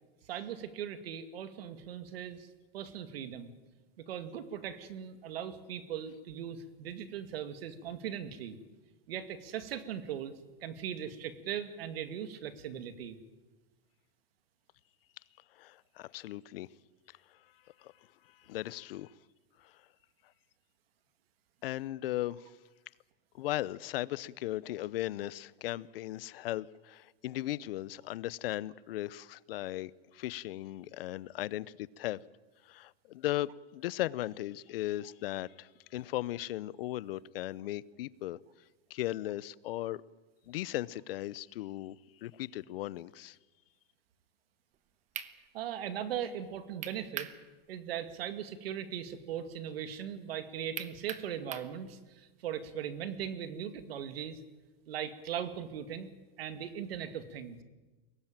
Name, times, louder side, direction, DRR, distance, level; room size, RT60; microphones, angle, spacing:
voice 1, 0.3-2.5 2.7-3.5 4.0-8.6 9.1-10.3 10.6-13.2 45.5-47.3 47.7-54.4 54.9-56.1 56.4-57.6, right 9 dB, 80° right, 10 dB, 2.3 m, -39 dB
voice 2, 15.6-16.7 17.8-17.9 18.4-19.1 19.6-19.7 21.6-22.5 23.3-32.2 32.7-38.4 38.9-40.0 40.5-42.0 42.2-43.4, left 15 dB, 75° left, 21 dB, 0.8 m, -37 dB
sound 1, 44.7-44.8 45.1-45.3 46.8-47.4 47.8-47.9 50.8-51.7, right 10 dB, 25° right, 1.1 m, -40 dB
22.5 x 18.0 x 9.0 m, 1.2 s
supercardioid pair, 160°, 29 cm